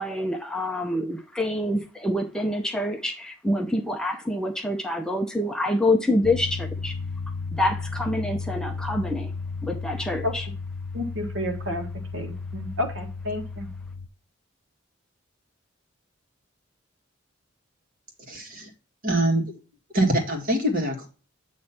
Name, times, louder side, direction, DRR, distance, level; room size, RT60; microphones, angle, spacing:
voice 1, 0.0-6.9 7.5-9.3 9.6-10.5, left 1 dB, 5° left, 0.6 m, -26 dB
sound 1, 6.2-14.1, left 4 dB, 75° left, 0.6 m, -34 dB
voice 2, 10.9-13.7, left 1 dB, 65° right, 1.7 m, -31 dB
voice 3, 18.3-18.7 19.0-19.4 19.9-21.1, right 1 dB, 40° right, 1.9 m, -24 dB
8.3 x 3.2 x 5.8 m
head